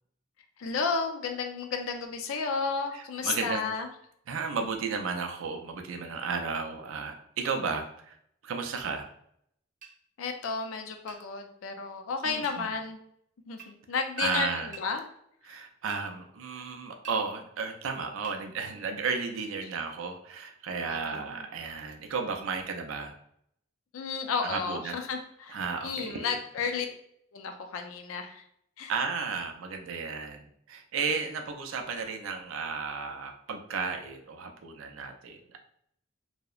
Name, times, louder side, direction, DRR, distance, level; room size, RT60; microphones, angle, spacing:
voice 1, 0.6-3.9 10.2-13.0 13.5-15.0 15.4-15.6 20.8-21.4 23.9-26.9 27.3-28.4 28.8-28.9, left 5 dB, 90° left, 5 dB, 0.4 m, -33 dB
voice 2, 2.9-3.7 4.3-8.2 8.4-9.1 12.2-12.7 14.2-14.7 15.4-23.2 24.4-25.0 25.5-26.4 28.9-35.6, right 5 dB, 80° right, 4 dB, 0.4 m, -34 dB
sound 1, 8.8-8.9 9.8-10.0 11.1-11.2 12.4-12.6 13.6-13.7 14.7-14.9 15.9-16.1 17.0-17.2 18.2-18.4, right 6 dB, 40° right, 0.6 m, -47 dB
2.7 x 2.0 x 2.3 m, 0.71 s
head